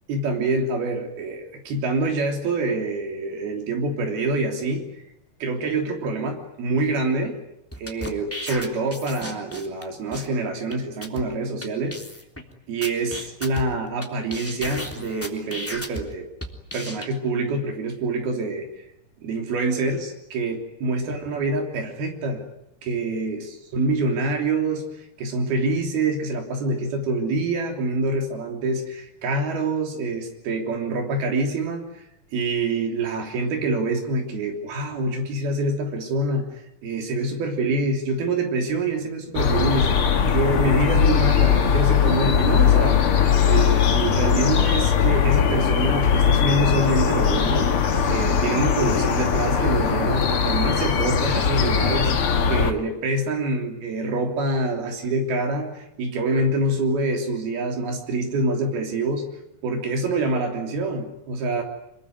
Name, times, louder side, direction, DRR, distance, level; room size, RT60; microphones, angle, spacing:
voice 1, 0.1-4.9 5.4-7.4 7.8-12.0 12.7-16.3 16.7-18.7 19.2-22.5 22.8-24.8 25.2-32.0 32.3-36.5 36.8-40.0 40.3-43.0 43.4-47.7 48.1-59.3 59.6-61.6, right 2 dB, 85° right, 3 dB, 5.2 m, -26 dB
sound 1, 7.7-9.8 10.1-10.3 10.7-10.8 11.0-11.2 11.6-11.7 11.9-12.4 12.8-14.1 14.3-16.0 16.4-17.1, equal, 5° left, 2.8 m, -34 dB
sound 2, 39.3-52.7, left 7 dB, 45° left, 2.2 m, -20 dB
27.0 x 21.0 x 9.5 m, 0.78 s
omnidirectional pair, 4.3 m